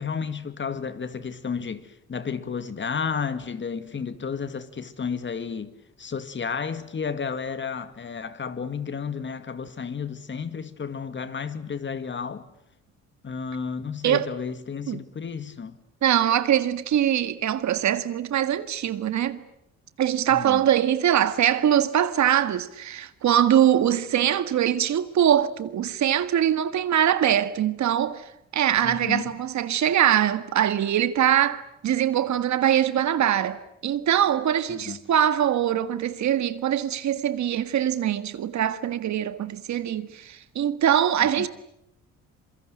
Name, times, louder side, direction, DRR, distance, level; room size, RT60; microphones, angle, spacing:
voice 1, 0.0-12.5 13.2-15.8 20.3-20.6 28.8-29.3 34.7-35.0 41.2-41.5, left 6 dB, 40° left, 2.1 m, -32 dB
voice 2, 16.0-19.4 20.0-41.5, right 10 dB, 65° right, 1.8 m, -23 dB
26.5 x 23.5 x 9.2 m
cardioid pair, 90°, 30 cm